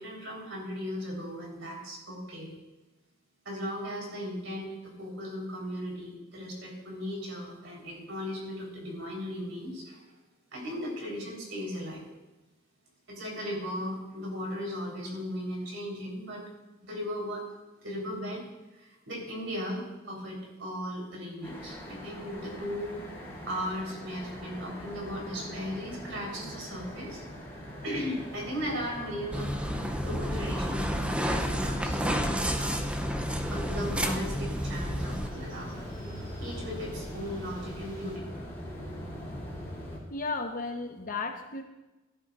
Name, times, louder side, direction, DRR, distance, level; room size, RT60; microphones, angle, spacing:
voice 1, 0.0-2.5 3.4-10.0 10.5-12.0 13.1-16.4 16.8-17.4 17.8-18.4 18.7-23.0 23.5-27.2 27.8-32.8 33.5-35.7 36.4-38.2, equal, 65° right, -2 dB, 4.0 m, -37 dB
sound 1, 21.4-40.0, equal, 10° left, 4.0 m, -41 dB
sound 2, 29.3-35.3, equal, 5° right, 0.6 m, -30 dB
sound 3, 30.7-38.2, equal, 25° right, 2.8 m, -49 dB
voice 2, 40.1-41.6, left 3 dB, 45° left, 4 dB, 1.0 m, -34 dB
17.0 x 11.0 x 2.5 m, 1.1 s
head